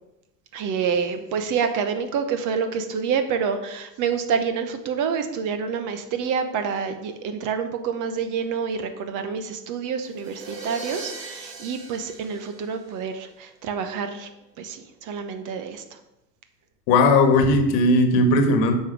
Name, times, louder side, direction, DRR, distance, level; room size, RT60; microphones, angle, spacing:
voice 1, 0.5-14.3 14.6-16.0, right 6 dB, 40° right, 8 dB, 1.1 m, -27 dB
sound 1, 10.0-13.3, right 3 dB, 90° right, 2.1 m, -39 dB
voice 2, 16.9-18.7, left 2 dB, 50° left, 8 dB, 1.5 m, -17 dB
8.5 x 5.5 x 6.2 m, 0.95 s
hypercardioid pair, 90°, 50 cm